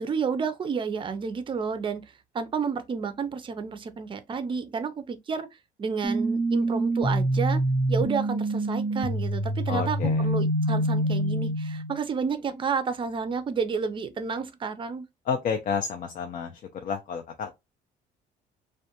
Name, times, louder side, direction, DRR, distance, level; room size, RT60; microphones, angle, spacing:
voice 1, 0.0-2.0 2.3-5.5 5.8-7.6 7.9-15.1, right 5 dB, 30° right, 0.4 m, -30 dB
sound 1, 6.0-12.0, right 1 dB, 15° left, 0.7 m, -26 dB
voice 2, 9.7-10.3 15.3-17.5, left 6 dB, 50° left, 0.5 m, -30 dB
2.4 x 2.2 x 2.8 m
cardioid pair, 110°, 17 cm